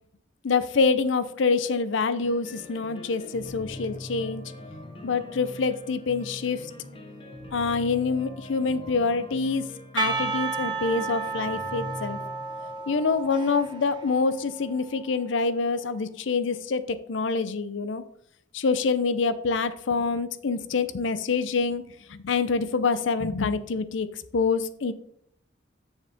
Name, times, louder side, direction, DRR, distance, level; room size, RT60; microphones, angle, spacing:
voice 1, 0.4-4.4 5.0-6.7 7.5-9.7 9.9-12.2 12.9-18.0 18.5-21.8 22.1-24.1 24.3-24.9, left 4 dB, 75° left, 13 dB, 0.6 m, -26 dB
sound 1, 2.2-15.1, left 1 dB, 30° left, 1.1 m, -43 dB
Percussion / Church bell, 10.0-15.0, right 4 dB, 25° right, 0.8 m, -32 dB
7.4 x 6.5 x 3.5 m, 0.68 s
head